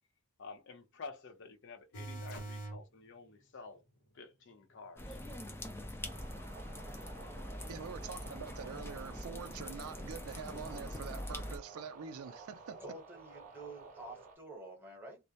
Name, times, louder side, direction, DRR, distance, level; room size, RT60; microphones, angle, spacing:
voice 1, 0.4-3.8 4.1-5.2, left 4 dB, 55° left, 0.6 m, -50 dB
sound 1, 1.9-2.8 9.2-9.3, right 2 dB, 90° left, 0.9 m, -42 dB
sound 2, 5.0-11.6, left 1 dB, 10° left, 0.3 m, -44 dB
sound 3, 6.0-14.4, right 4 dB, 35° right, 0.6 m, -53 dB
voice 2, 7.7-12.8, right 6 dB, 75° right, 0.4 m, -45 dB
voice 3, 12.8-15.2, right 2 dB, 10° right, 0.9 m, -49 dB
2.2 x 2.0 x 2.7 m
head